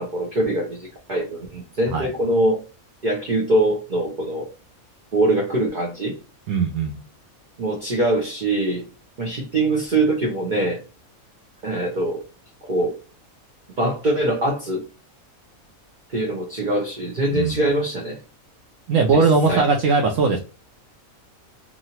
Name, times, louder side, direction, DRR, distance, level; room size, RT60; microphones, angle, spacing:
voice 1, 0.0-2.6 3.0-4.5 5.1-6.2 7.6-8.8 9.2-10.8 11.6-12.2 12.7-12.9 13.8-14.8 16.1-18.2 19.1-19.7, right 1 dB, 45° right, 0 dB, 0.6 m, -23 dB
voice 2, 6.5-7.0 17.3-17.6 18.9-20.4, right 4 dB, 70° right, 1 dB, 0.9 m, -19 dB
3.0 x 2.4 x 2.8 m, 0.32 s
omnidirectional pair, 1.5 m